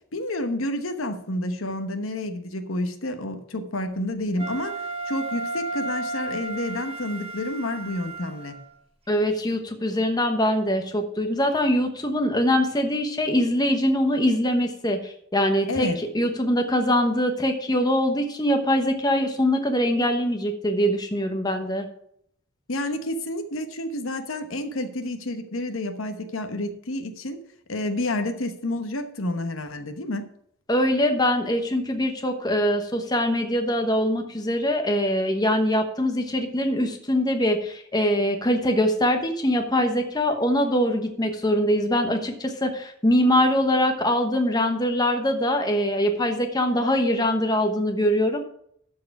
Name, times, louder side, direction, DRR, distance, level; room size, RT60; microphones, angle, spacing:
voice 1, 0.1-4.8 5.1-8.6 15.7-16.0 22.7-27.4 27.7-30.2, left 1 dB, 75° left, 7 dB, 1.1 m, -29 dB
Wind instrument woodwind instrument, 4.4-8.7, right 2 dB, 30° right, 1.2 m, -33 dB
voice 2, 9.1-21.9 30.7-48.4, equal, 20° left, 5 dB, 1.1 m, -23 dB
12.5 x 4.7 x 5.9 m, 0.68 s
head